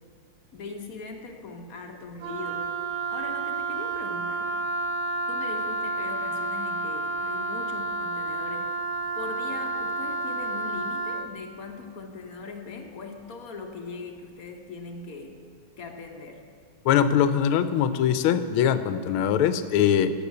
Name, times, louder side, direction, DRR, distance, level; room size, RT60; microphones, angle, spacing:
voice 1, 0.5-2.7 3.1-4.6 5.3-8.7 9.2-15.4 15.8-16.4, left 4 dB, 55° left, 4 dB, 1.1 m, -40 dB
Wind instrument woodwind instrument, 2.2-11.3, right 2 dB, 60° right, 0.9 m, -30 dB
voice 2, 16.8-20.1, left 9 dB, 80° left, 12 dB, 1.5 m, -22 dB
12.0 x 7.4 x 8.0 m, 2.2 s
omnidirectional pair, 2.3 m